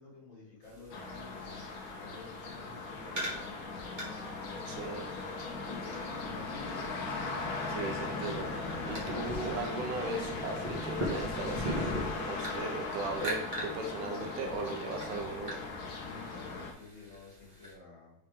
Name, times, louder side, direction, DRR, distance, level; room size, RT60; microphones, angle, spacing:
voice 1, 0.0-5.1 5.4-6.9 16.0-18.3, left 4 dB, 40° left, -5 dB, 2.9 m, -52 dB
sound 1, 0.6-17.7, equal, 50° right, 0.5 m, -42 dB
sound 2, 0.9-16.7, left 3 dB, 85° left, 1.1 m, -38 dB
voice 2, 4.7-5.1 7.8-15.6, right 3 dB, 85° right, 3 dB, 2.3 m, -38 dB
6.0 x 4.9 x 3.6 m, 0.76 s
omnidirectional pair, 3.6 m